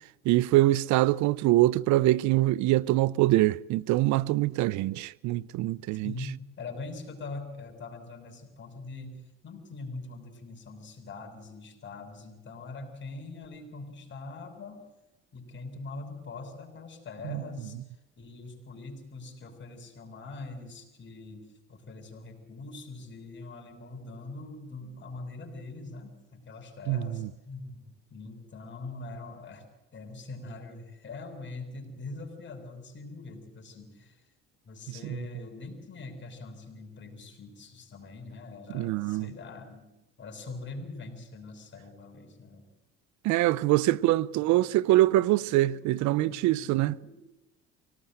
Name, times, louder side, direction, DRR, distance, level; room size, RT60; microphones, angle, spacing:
voice 1, 0.3-6.1 17.3-17.4 26.9-27.3 35.0-35.2 38.7-39.3 43.2-46.9, right 16 dB, 75° right, 0.8 m, -24 dB
voice 2, 5.9-14.8 15.3-17.8 18.2-29.7 29.9-34.2 34.7-42.7 43.8-47.1, left 3 dB, 40° left, 7.4 m, -43 dB
25.5 x 19.0 x 7.9 m
cardioid pair, 100°, 29 cm